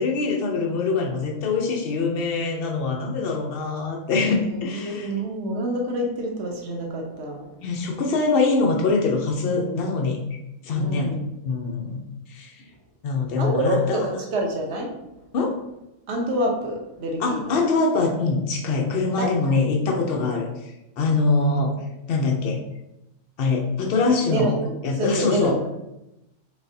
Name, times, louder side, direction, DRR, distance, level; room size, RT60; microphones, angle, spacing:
voice 1, 0.0-5.1 7.6-10.2 10.6-11.1 11.5-12.7 13.0-14.1 15.3-15.5 17.2-21.7 22.1-22.6 23.4-24.5 24.8-25.5, left 3 dB, 85° left, 1 dB, 0.5 m, -23 dB
voice 2, 4.2-7.6 9.4-10.0 10.7-11.2 13.4-15.0 16.1-17.6 19.0-19.3 24.1-25.7, right 1 dB, 55° right, 1 dB, 0.8 m, -27 dB
4.0 x 3.2 x 2.7 m, 0.90 s
omnidirectional pair, 1.6 m